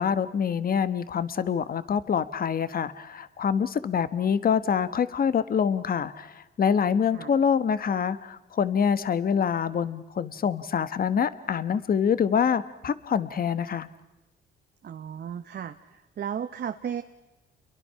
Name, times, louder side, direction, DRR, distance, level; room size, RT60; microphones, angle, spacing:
voice 1, 0.0-13.9, left 7 dB, 45° left, 14 dB, 1.3 m, -25 dB
voice 2, 14.8-17.0, right 8 dB, 55° right, 7 dB, 1.1 m, -34 dB
29.5 x 23.0 x 5.8 m, 1.0 s
cardioid pair, 90°, 20 cm